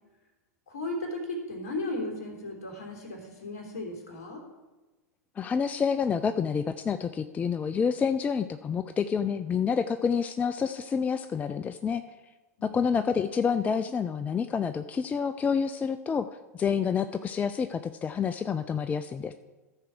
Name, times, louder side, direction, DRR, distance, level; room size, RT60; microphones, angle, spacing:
voice 1, 0.7-4.4 12.6-12.8, left 2 dB, 60° left, -2 dB, 3.3 m, -35 dB
voice 2, 5.4-12.0 12.6-19.3, left 6 dB, 15° left, 11 dB, 0.4 m, -28 dB
14.0 x 4.7 x 6.1 m, 1.2 s
figure-of-eight pair, 95°, 9 cm